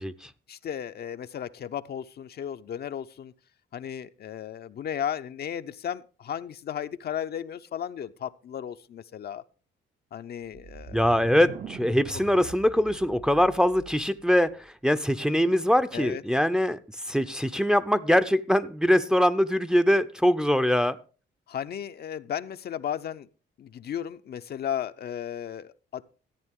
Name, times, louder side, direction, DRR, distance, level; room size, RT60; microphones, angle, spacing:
voice 1, 0.5-3.3 3.7-9.4 10.1-11.2 12.4-12.5 15.9-16.2 21.5-23.3 23.6-26.0, left 9 dB, 55° left, 0.6 m, -35 dB
sound 1, 10.4-14.2, right 5 dB, 40° right, 0.7 m, -42 dB
voice 2, 10.9-16.8 17.1-21.0, equal, 5° right, 0.6 m, -23 dB
14.0 x 8.9 x 3.6 m
cardioid pair, 90°, 20 cm